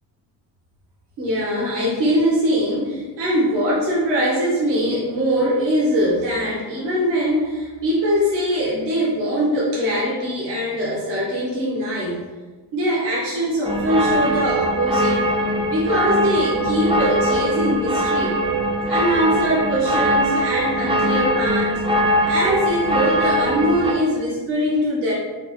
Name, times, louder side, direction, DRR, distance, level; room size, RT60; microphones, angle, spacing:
voice 1, 1.2-12.2 12.7-15.2 15.7-18.3 18.9-21.8 22.2-25.1, equal, 75° right, -5 dB, 1.2 m, -22 dB
sound 1, 13.6-23.9, equal, 15° right, 0.5 m, -21 dB
3.4 x 2.0 x 4.0 m, 1.3 s
supercardioid pair, 70°, 44 cm